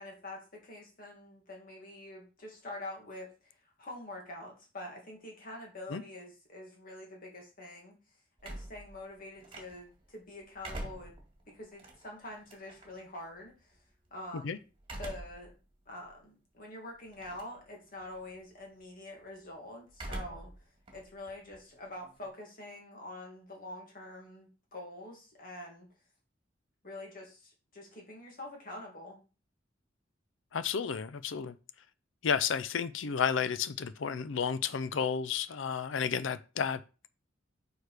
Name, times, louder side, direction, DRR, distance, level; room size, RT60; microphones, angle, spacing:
voice 1, 0.0-11.2 11.5-13.8 14.1-14.6 15.0-15.5 15.9-20.5 20.9-25.9 26.8-29.2, left 1 dB, 45° left, 2.3 m, -46 dB
sound 1, 8.4-10.0 10.4-13.0 14.8-15.5 16.0-16.1 17.1-17.6 17.9-18.4 19.9-20.6 20.9-22.3, right 1 dB, 30° right, 2.0 m, -44 dB
voice 2, 30.5-31.5 32.2-36.8, left 6 dB, 75° left, 0.5 m, -32 dB
6.6 x 4.7 x 4.9 m
head